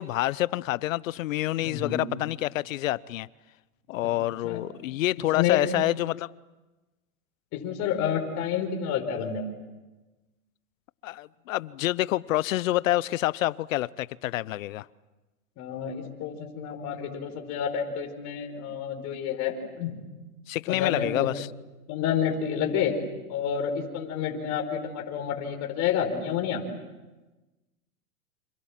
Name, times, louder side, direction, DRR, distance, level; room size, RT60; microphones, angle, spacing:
voice 1, 0.0-3.3 3.9-6.3 11.0-14.9 20.5-21.5, left 15 dB, 60° left, 21 dB, 0.9 m, -27 dB
voice 2, 1.6-2.0 4.4-4.6 5.3-5.7 7.5-9.5 15.6-20.0 20.7-21.3 21.9-23.0 23.3-26.6, left 8 dB, 35° left, 3 dB, 5.0 m, -29 dB
29.0 x 27.0 x 7.5 m, 1.1 s
hypercardioid pair, 125°, 45 cm